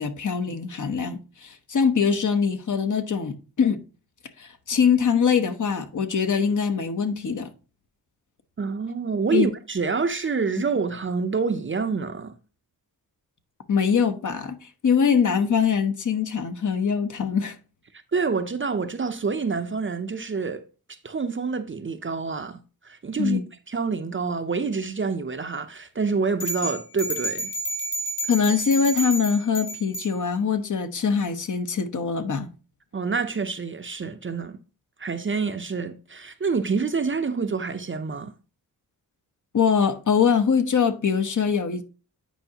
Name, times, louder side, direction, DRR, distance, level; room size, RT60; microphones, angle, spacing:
voice 1, 0.0-3.8 4.4-7.5 9.3-9.5 13.7-17.5 23.2-23.4 28.3-32.5 39.5-41.8, left 6 dB, 50° left, 0.9 m, -23 dB
voice 2, 8.6-12.3 18.1-20.6 21.0-23.4 23.7-27.5 32.9-34.6 35.0-38.3, right 5 dB, 30° right, 0.6 m, -27 dB
sound 1, 26.4-30.1, right 1 dB, 80° left, 3.2 m, -30 dB
9.0 x 4.8 x 2.8 m
cardioid pair, 80°, 38 cm